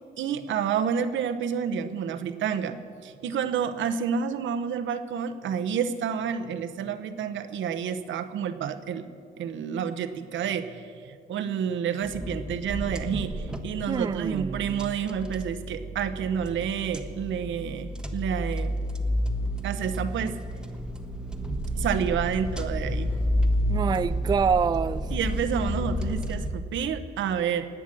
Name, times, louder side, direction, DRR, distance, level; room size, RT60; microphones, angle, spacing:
voice 1, 0.2-9.0 9.4-18.8 19.6-20.4 21.8-23.1 25.1-27.7, right 7 dB, 75° right, 10 dB, 1.0 m, -29 dB
sound 1, 12.0-26.5, equal, 5° right, 1.3 m, -30 dB
voice 2, 13.9-14.9 23.7-25.1, right 6 dB, 20° right, 14 dB, 0.3 m, -26 dB
19.0 x 8.2 x 7.6 m, 2.4 s
cardioid pair, 90°, 20 cm